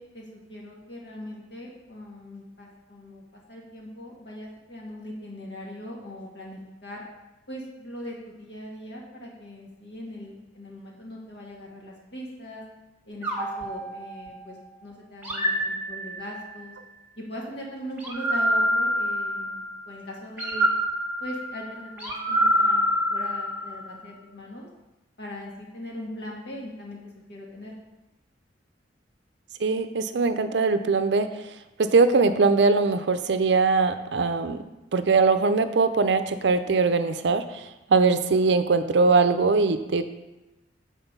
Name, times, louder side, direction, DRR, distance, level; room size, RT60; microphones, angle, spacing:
voice 1, 0.0-7.0 7.5-12.6 13.0-16.7 17.2-20.7 21.2-24.7 25.2-27.0 27.3-27.7, left 1 dB, 60° left, -2 dB, 1.8 m, -40 dB
sound 1, 13.2-14.6 15.2-16.5 18.0-19.7 20.4-23.9, equal, 10° right, 1.6 m, -26 dB
voice 2, 29.6-31.3 31.8-34.6 34.9-40.0, right 4 dB, 65° right, 10 dB, 0.5 m, -21 dB
8.0 x 4.4 x 5.4 m, 1.0 s
head